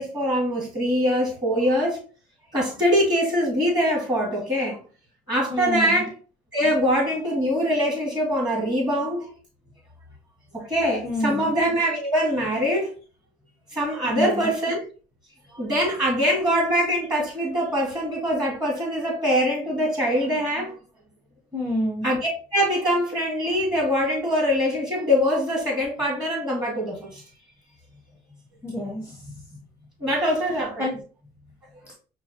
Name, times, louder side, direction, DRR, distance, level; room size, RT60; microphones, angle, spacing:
voice 1, 0.0-2.0 2.5-4.8 5.3-6.1 6.5-9.3 10.5-12.9 13.7-14.8 15.5-20.8 22.0-22.2 22.5-27.2 30.0-30.9, equal, 25° right, 2.1 m, -23 dB
voice 2, 5.5-6.1 11.0-11.5 14.0-14.5 21.5-22.1 28.6-29.4 30.8-31.0 31.8-31.9, left 1 dB, 10° right, 1.0 m, -28 dB
5.5 x 2.4 x 2.9 m
cardioid pair, 110°, 17 cm